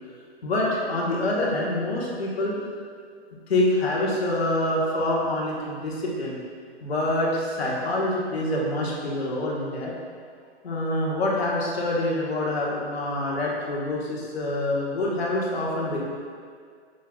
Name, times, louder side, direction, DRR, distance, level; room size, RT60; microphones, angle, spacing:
voice 1, 0.4-2.6 3.5-6.4 6.8-9.9 10.6-16.0, left 1 dB, 65° left, -4 dB, 1.6 m, -26 dB
8.0 x 6.5 x 2.5 m, 2.1 s
figure-of-eight pair, 125°, 33 cm